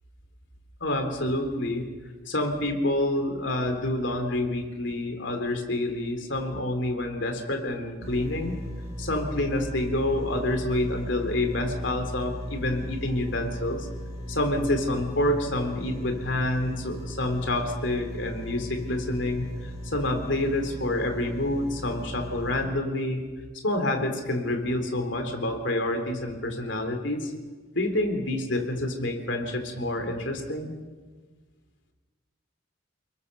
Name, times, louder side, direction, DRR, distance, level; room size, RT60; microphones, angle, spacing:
voice 1, 0.8-1.8 2.3-8.6 9.0-13.9 14.3-19.5 19.8-23.2 23.6-27.3 27.8-30.7, left 1 dB, 60° left, 5 dB, 3.6 m, -28 dB
sound 1, 8.0-22.7, equal, 30° right, 7.0 m, -37 dB
30.0 x 21.0 x 6.9 m, 1.4 s
head